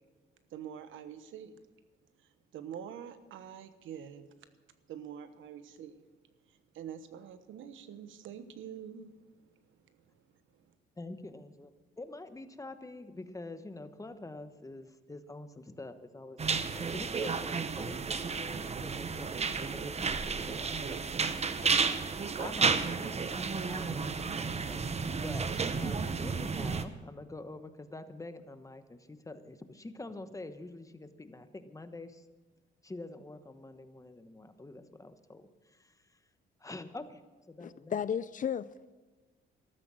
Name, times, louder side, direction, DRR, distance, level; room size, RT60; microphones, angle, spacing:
voice 1, 0.5-1.6 2.5-4.3 4.9-6.0 6.7-9.1, right 9 dB, 80° right, 1.1 m, -45 dB
voice 2, 11.0-11.7 12.0-24.9 25.2-32.3 32.8-36.2 36.6-37.2 37.5-38.0, left 2 dB, 15° left, 1.1 m, -46 dB
sound 1, 16.4-26.9, right 5 dB, 35° right, 0.9 m, -32 dB
voice 3, 37.6-38.9, left 8 dB, 40° left, 0.5 m, -34 dB
13.5 x 13.0 x 6.3 m
cardioid pair, 90°, 20 cm